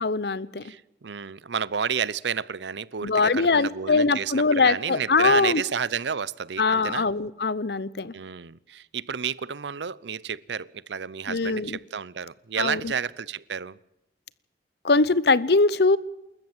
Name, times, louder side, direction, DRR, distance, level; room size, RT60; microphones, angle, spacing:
voice 1, 0.0-0.6 3.0-5.6 6.6-8.1 11.3-11.8 12.6-12.9 14.8-16.0, left 3 dB, 65° left, 0.8 m, -22 dB
voice 2, 0.6-7.1 8.1-13.8, right 7 dB, 85° right, 0.7 m, -31 dB
28.0 x 14.0 x 7.3 m
head